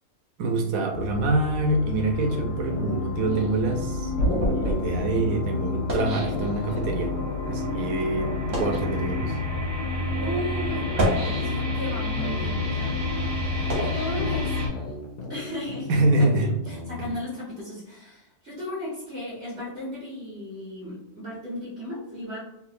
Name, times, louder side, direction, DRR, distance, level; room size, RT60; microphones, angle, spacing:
voice 1, 0.4-7.1 7.5-9.4 15.9-16.5, right 2 dB, 85° right, 4 dB, 1.1 m, -25 dB
sound 1, 0.9-14.7, left 3 dB, 25° left, 1.2 m, -29 dB
sound 2, 2.2-5.7 6.2-9.7 10.2-13.7 14.2-17.1, left 2 dB, 70° left, 0.4 m, -38 dB
sound 3, 3.3-7.0 7.7-7.8 8.4-8.9 9.7-9.8 10.8-11.9 12.4-14.9, equal, 65° right, 1.5 m, -30 dB
voice 2, 10.2-13.0 13.8-14.5 15.3-16.3 16.7-22.4, left 1 dB, 45° right, -10 dB, 1.5 m, -35 dB
3.6 x 2.9 x 2.5 m, 0.85 s
omnidirectional pair, 1.5 m